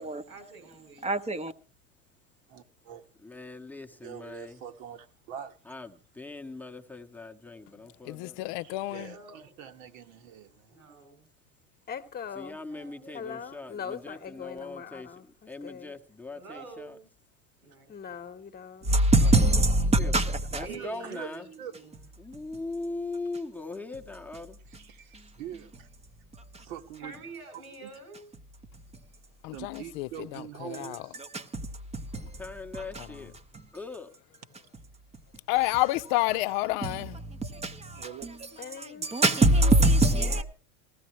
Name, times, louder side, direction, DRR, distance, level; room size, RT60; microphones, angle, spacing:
voice 1, 0.3-1.1 8.9-9.4 10.7-11.3 12.7-13.5 16.3-17.1 17.6-18.2 20.6-21.9 27.0-28.3 40.2-40.4, right 3 dB, 90° right, 7.5 m, -47 dB
voice 2, 1.0-1.5 18.8-20.7 24.7-24.8 25.1-25.3 26.3-26.7 28.9-29.0 31.2-32.5 32.7-33.7 36.8-40.4, right 1 dB, 15° right, 0.9 m, -25 dB
voice 3, 2.5-3.1 3.9-5.6 8.6-10.8 20.7-21.3 21.6-21.8 24.7-25.9 26.6-27.2 27.5-27.9 29.5-31.2 37.9-38.5 39.6-39.8, right 9 dB, 60° right, 1.7 m, -44 dB
voice 4, 3.2-4.6 5.7-8.5 12.3-15.1 15.5-16.9 20.0-20.1 20.5-21.5 22.2-24.6 32.4-33.3 33.7-34.2, left 3 dB, 5° left, 1.0 m, -40 dB
voice 5, 8.0-9.1 29.4-31.0 33.0-33.3 35.5-37.2, left 19 dB, 50° left, 0.7 m, -30 dB
voice 6, 11.9-12.6 13.1-16.0 17.9-19.0 38.6-39.1, left 7 dB, 20° left, 1.2 m, -41 dB
18.5 x 15.5 x 3.1 m
supercardioid pair, 120°, 43 cm